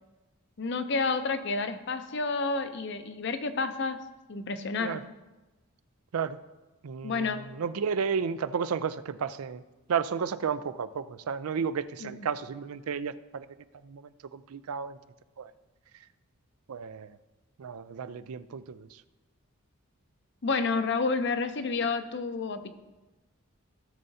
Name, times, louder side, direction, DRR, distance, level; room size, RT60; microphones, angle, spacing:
voice 1, 0.6-4.0 4.3-5.0 7.0-7.4 12.0-12.3 20.4-22.7, left 4 dB, 55° left, 9 dB, 0.6 m, -30 dB
voice 2, 6.8-9.6 9.9-13.5 13.8-15.0 15.4-15.5 16.7-17.2 17.6-19.0, right 6 dB, 85° right, 14 dB, 0.4 m, -33 dB
16.0 x 6.8 x 2.7 m, 1.1 s
head